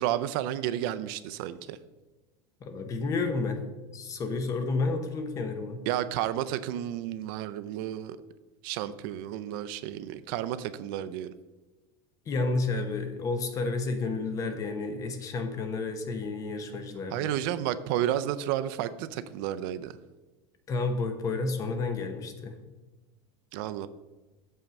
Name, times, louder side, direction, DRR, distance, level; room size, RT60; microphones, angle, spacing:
voice 1, 0.0-1.8 5.9-8.2 8.6-11.3 17.1-19.9 23.5-23.9, right 12 dB, 60° right, 13 dB, 0.4 m, -31 dB
voice 2, 2.6-3.6 3.9-5.8 12.3-17.3 20.7-22.6, left 3 dB, 25° left, 7 dB, 0.8 m, -31 dB
7.2 x 5.6 x 5.2 m, 1.2 s
cardioid pair, 165°, 13 cm